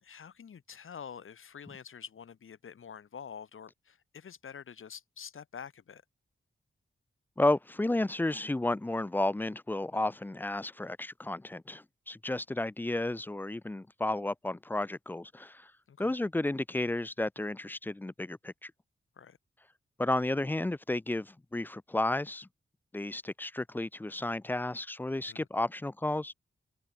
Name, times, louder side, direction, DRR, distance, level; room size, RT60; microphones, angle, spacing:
voice 1, 0.0-6.0 15.9-16.1 19.2-19.4 25.2-25.5, left 7 dB, 85° left, 3.8 m, -47 dB
voice 2, 7.4-15.7 16.0-18.7 20.0-22.5 22.9-26.3, left 2 dB, 10° left, 0.3 m, -32 dB
cardioid pair, 70°, 21 cm